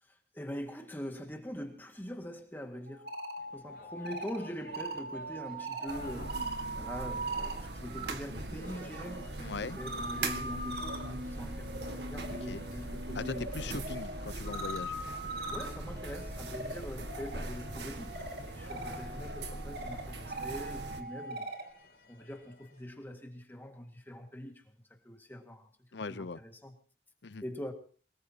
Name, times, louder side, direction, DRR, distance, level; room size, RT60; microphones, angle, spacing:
voice 1, 0.0-3.1 3.5-6.4 6.7-9.3 9.6-13.9 15.5-21.5 22.1-25.7 26.1-26.7 27.4-27.7, equal, 10° left, 2.0 m, -43 dB
sound 1, 2.9-8.1 8.4-21.7, right 2 dB, 60° right, 2.9 m, -42 dB
sound 2, 3.4-23.2, left 2 dB, 60° left, 6.6 m, -56 dB
sound 3, 5.9-21.0, right 2 dB, 75° right, 1.9 m, -41 dB
voice 2, 9.4-9.8 12.3-12.6 13.2-14.9 25.9-26.4 27.2-27.4, left 4 dB, 80° left, 0.7 m, -40 dB
23.5 x 21.0 x 2.9 m
head